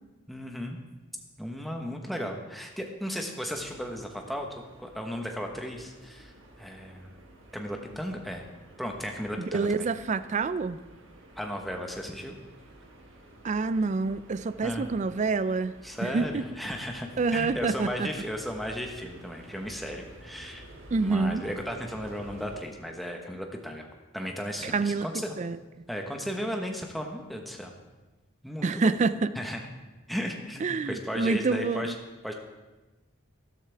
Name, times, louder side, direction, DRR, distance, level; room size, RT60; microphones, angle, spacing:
voice 1, 0.3-0.8 1.4-7.1 7.5-8.4 8.8-9.9 11.4-12.4 14.6-14.9 15.8-20.6 21.0-23.9 24.1-25.4 25.9-27.7 28.4-28.9 29.3-29.6 30.1-31.9 32.2-32.3, equal, ahead, 2 dB, 1.1 m, -35 dB
sound 1, 3.5-22.6, right 1 dB, 65° right, 1.6 m, -51 dB
voice 2, 9.4-10.8 13.4-15.7 16.0-16.4 17.2-18.1 20.9-21.4 24.6-25.1 25.4-25.6 28.6-29.3 30.6-31.9, right 4 dB, 35° right, 14 dB, 0.3 m, -27 dB
13.0 x 12.0 x 3.4 m, 1.2 s
head